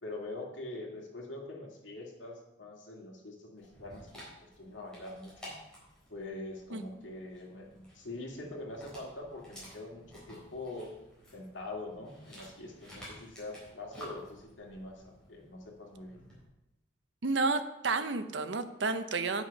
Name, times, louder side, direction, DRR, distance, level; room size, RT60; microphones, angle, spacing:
voice 1, 0.0-5.6 6.1-10.9 11.3-16.2, left 2 dB, 75° left, 0 dB, 2.1 m, -44 dB
Dog, 3.6-16.4, equal, 5° left, 4.0 m, -53 dB
voice 2, 17.2-19.4, right 3 dB, 70° right, 10 dB, 0.7 m, -31 dB
9.2 x 6.2 x 5.3 m, 0.90 s
head